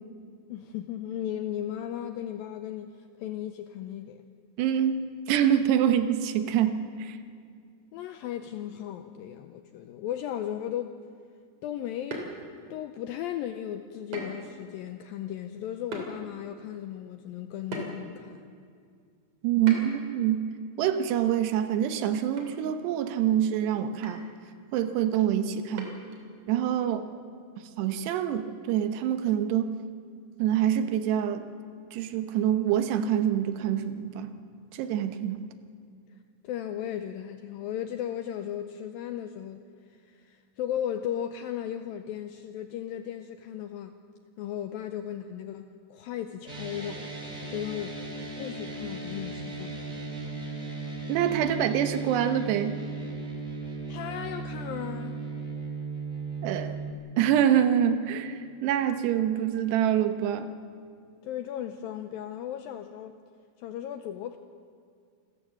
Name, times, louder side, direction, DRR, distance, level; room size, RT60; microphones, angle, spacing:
voice 1, 0.5-4.2 7.9-11.0 11.6-12.4 12.7-18.4 36.4-39.6 39.9-43.9 44.4-47.1 47.5-48.0 48.4-50.4 53.9-55.2 61.2-63.2 63.6-64.4, left 10 dB, 85° left, 8 dB, 2.1 m, -36 dB
voice 2, 4.6-7.2 19.4-20.4 20.8-24.2 24.7-25.9 26.5-27.1 27.8-29.7 30.4-31.4 31.9-34.3 34.7-35.4 51.1-52.8 56.4-56.7 57.2-60.5, right 10 dB, 80° right, 9 dB, 3.1 m, -26 dB
sound 1, 12.1-12.8 14.1-14.5 14.9-15.0 15.9-16.1 17.7-18.2 19.7-20.1 21.8-22.0 22.4-22.5 22.8-22.9 24.0-24.3 25.8-26.2, right 2 dB, 40° right, 3.7 m, -38 dB
sound 2, 46.5-56.9, right 3 dB, 15° right, 1.6 m, -36 dB
28.0 x 14.0 x 7.6 m, 2.2 s
omnidirectional pair, 4.9 m